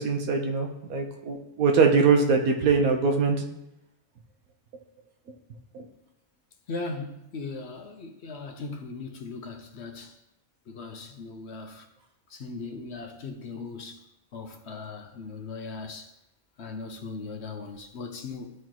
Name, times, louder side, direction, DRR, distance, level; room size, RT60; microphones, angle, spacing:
voice 1, 0.0-3.4 5.7-5.8, right 4 dB, 90° right, 1.4 m, -22 dB
voice 2, 6.7-10.2 10.7-11.9 12.3-14.0 14.3-16.1 16.6-18.5, left 3 dB, 55° left, 0.9 m, -38 dB
12.5 x 4.7 x 3.0 m
omnidirectional pair, 1.5 m